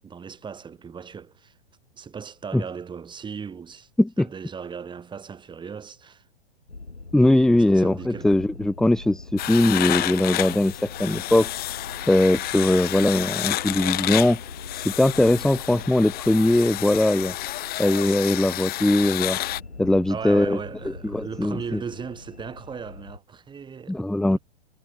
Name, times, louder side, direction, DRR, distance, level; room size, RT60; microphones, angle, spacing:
voice 1, 0.0-1.6 1.9-3.9 4.2-6.3 7.5-8.4 20.1-24.4, right 6 dB, 15° right, 6.5 m, -37 dB
sound 1, 6.7-23.2, left 3 dB, 85° left, 7.5 m, -42 dB
voice 2, 7.1-11.5 12.1-14.4 14.7-17.3 17.8-19.4 19.8-20.6 21.0-21.8 23.9-24.4, left 1 dB, ahead, 0.7 m, -20 dB
sound 2, 9.4-19.6, left 16 dB, 30° left, 4.7 m, -30 dB
figure-of-eight pair, 110°, 32 cm